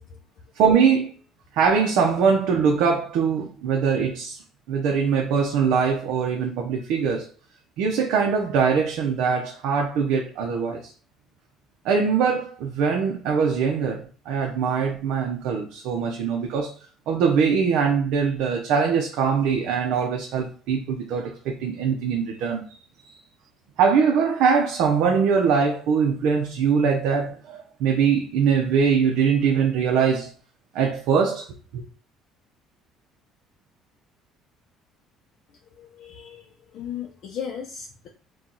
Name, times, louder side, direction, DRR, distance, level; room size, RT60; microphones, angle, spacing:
voice 1, 0.6-1.1 1.5-4.4 4.7-7.3 7.8-10.9 11.8-16.7 17.1-22.7 23.8-30.3 30.7-31.4 31.7-31.8, right 6 dB, 75° right, 0.7 m, -22 dB
voice 2, 35.7-38.1, left 8 dB, 55° left, 0.6 m, -36 dB
4.5 x 2.3 x 3.9 m
cardioid pair, 140°, 0 cm